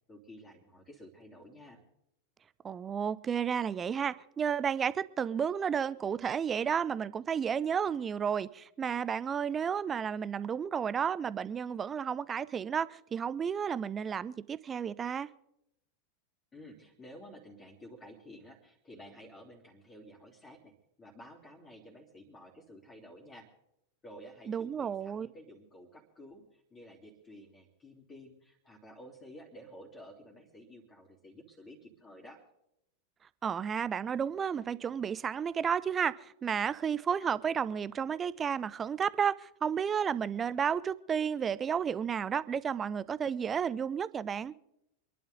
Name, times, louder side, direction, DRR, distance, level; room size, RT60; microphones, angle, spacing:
voice 1, 0.1-1.8 16.5-20.7 21.0-23.5 24.0-32.4, equal, 20° left, 3.1 m, -52 dB
voice 2, 2.6-15.3 24.5-25.3 33.4-44.5, right 7 dB, 20° right, 0.5 m, -32 dB
26.5 x 11.0 x 3.9 m
figure-of-eight pair, 90°, 0 cm